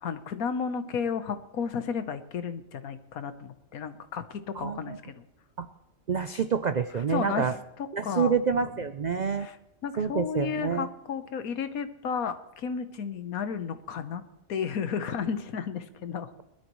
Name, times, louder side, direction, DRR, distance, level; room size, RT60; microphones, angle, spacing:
voice 1, 0.0-5.2 7.1-7.5 8.0-8.3 9.4-9.5 9.8-14.2 14.5-16.3, left 6 dB, 85° left, 10 dB, 1.4 m, -33 dB
voice 2, 4.5-5.0 5.6-5.7 6.1-7.6 7.9-9.5 10.0-10.9, right 6 dB, 75° right, 10 dB, 0.4 m, -28 dB
21.0 x 13.0 x 3.1 m, 0.94 s
omnidirectional pair, 1.5 m